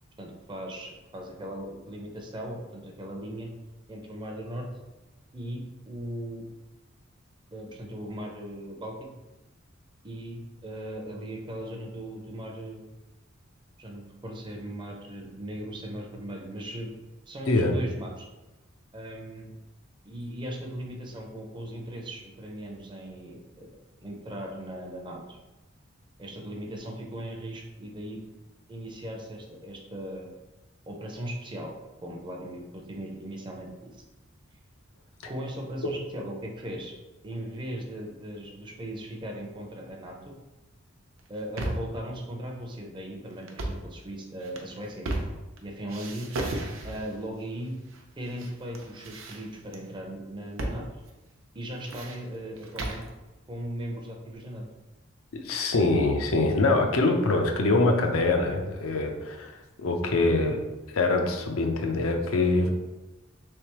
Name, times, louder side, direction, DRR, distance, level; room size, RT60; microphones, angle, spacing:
voice 1, 0.2-3.5 3.9-4.7 5.3-6.4 7.5-9.0 10.0-12.9 13.8-16.9 17.3-18.3 18.9-19.5 20.1-23.7 24.0-25.4 26.2-28.2 28.7-30.3 30.9-31.7 32.0-34.0 35.2-36.9 37.2-40.3 41.3-45.1 45.6-46.3 46.8-47.8 48.2-50.9 51.5-53.0 53.5-54.6, right 1 dB, 25° right, 1 dB, 0.5 m, -38 dB
sound 1, 41.2-42.0 43.4-43.9 44.4-45.6 45.9-47.2 47.9-48.5 48.7-49.8 50.6-50.8 51.1-51.2 51.6-53.1, right 1 dB, 75° right, 0.6 m, -34 dB
voice 2, 55.3-60.6 60.9-62.8, left 2 dB, 85° left, 3 dB, 0.6 m, -24 dB
3.6 x 3.3 x 2.9 m, 1.1 s
head